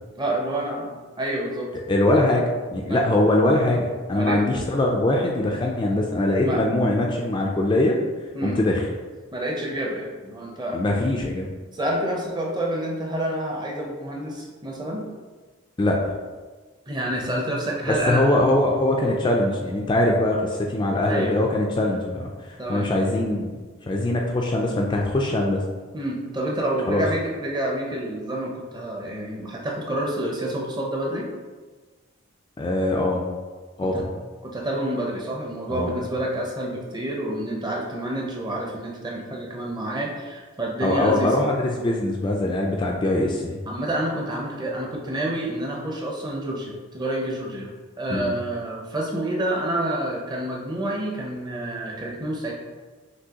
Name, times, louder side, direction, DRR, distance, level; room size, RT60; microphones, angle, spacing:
voice 1, 0.2-1.7 2.9-3.0 4.1-4.4 6.4-6.6 8.3-8.6 9.3-10.8 11.7-15.0 16.9-18.3 21.0-21.3 22.6-22.9 25.9-31.3 33.8-34.0 34.4-41.3 43.7-52.5, right 1 dB, 20° right, -1 dB, 0.6 m, -28 dB
voice 2, 1.9-8.0 8.4-8.8 10.7-11.5 15.8-16.1 17.9-22.3 22.7-23.6 23.9-25.6 26.9-27.0 32.6-33.2 33.8-34.1 35.7-36.0 40.8-43.6 48.1-48.3, left 1 dB, 20° left, -1 dB, 0.3 m, -22 dB
6.0 x 2.7 x 2.9 m, 1.4 s
head